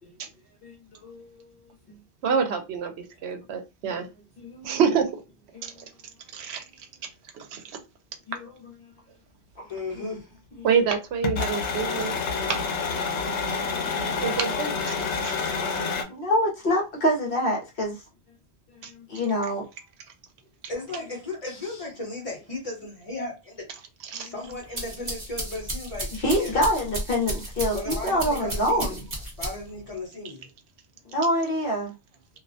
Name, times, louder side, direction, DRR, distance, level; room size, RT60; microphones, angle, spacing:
voice 1, 2.2-2.9 3.2-4.1 4.6-5.1 6.3-6.6 7.5-7.6 10.6-12.2 14.2-14.7 15.2-15.3 24.1-24.3, right 6 dB, 75° right, 0.8 m, -26 dB
voice 2, 4.4-4.8 5.5-5.7 8.3-8.7 9.9-10.0 10.6-10.7 13.4-14.2 16.1-18.0 18.9-19.6 21.5-21.6 24.1-24.3 26.2-29.0 31.1-31.9, equal, 60° left, 0.9 m, -26 dB
voice 3, 9.7-10.2 20.7-23.6 24.2-26.6 27.7-29.0 29.4-30.5, left 2 dB, 35° left, 0.9 m, -35 dB
sound 1, 11.2-16.0, left 4 dB, 90° left, 0.9 m, -28 dB
sound 2, 24.5-29.8, right 1 dB, 20° right, 1.0 m, -33 dB
2.4 x 2.1 x 2.5 m
omnidirectional pair, 1.1 m